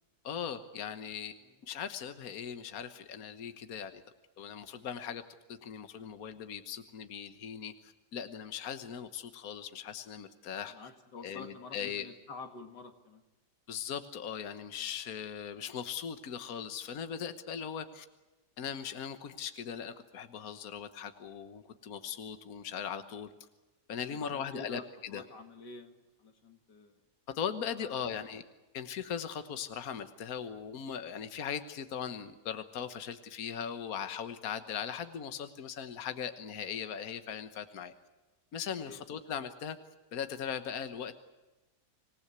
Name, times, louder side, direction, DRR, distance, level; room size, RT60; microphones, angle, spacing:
voice 1, 0.2-1.3 1.6-4.0 4.4-5.2 5.5-10.7 11.2-12.1 13.7-18.0 18.6-23.3 23.9-25.2 27.3-28.4 28.7-37.9 38.5-39.8 40.1-41.1, left 8 dB, 60° left, 9 dB, 1.6 m, -39 dB
voice 2, 10.7-13.2 24.1-27.0 27.8-28.3 38.8-39.1, left 4 dB, 90° left, 6 dB, 2.8 m, -49 dB
26.5 x 18.5 x 8.2 m, 1.1 s
omnidirectional pair, 1.8 m